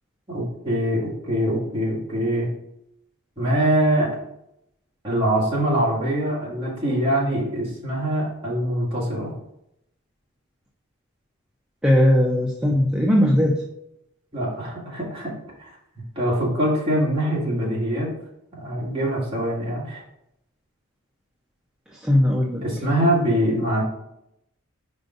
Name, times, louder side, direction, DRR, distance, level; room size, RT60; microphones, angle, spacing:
voice 1, 0.3-2.5 3.4-4.2 5.0-9.3 14.3-15.7 16.2-18.1 18.6-20.0 22.6-23.8, right 1 dB, 25° right, -6 dB, 2.1 m, -23 dB
voice 2, 11.8-13.6 21.9-22.6, left 1 dB, 5° right, -1 dB, 0.5 m, -19 dB
5.2 x 5.0 x 3.8 m, 0.81 s
head